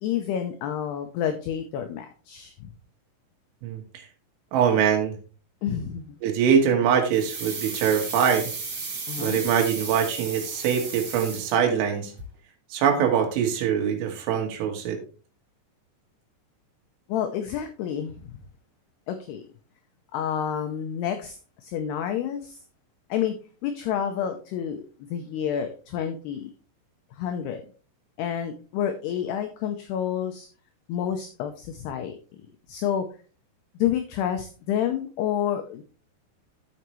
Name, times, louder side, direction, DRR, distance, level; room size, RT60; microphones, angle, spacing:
voice 1, 0.0-2.7 5.6-6.2 9.1-9.4 17.1-18.1 19.1-19.5 20.1-22.6 23.1-23.4 23.6-24.8 25.1-26.5 27.1-27.6 28.2-30.5 30.9-32.1 32.7-33.1 33.8-35.8, left 9 dB, 80° left, 6 dB, 2.4 m, -29 dB
voice 2, 3.6-4.1 4.5-5.2 6.2-8.5 9.2-12.1 12.7-15.0, right 7 dB, 80° right, 2 dB, 4.0 m, -23 dB
sound 1, 7.1-11.9 12.2-12.3, right 4 dB, 40° right, 3.1 m, -34 dB
13.0 x 5.7 x 3.1 m, 0.36 s
omnidirectional pair, 5.4 m